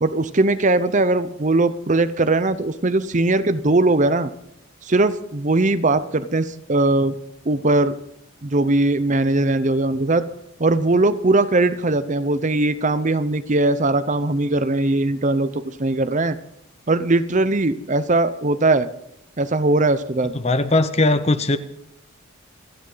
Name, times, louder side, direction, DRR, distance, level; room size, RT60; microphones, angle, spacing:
voice 1, 0.0-4.3 4.8-7.1 7.5-7.9 8.4-10.2 10.6-16.4 16.9-18.9 19.4-20.3, right 2 dB, 35° right, 12 dB, 0.7 m, -20 dB
voice 2, 20.3-21.6, left 2 dB, 30° left, 11 dB, 0.9 m, -19 dB
28.5 x 10.0 x 3.9 m, 0.76 s
head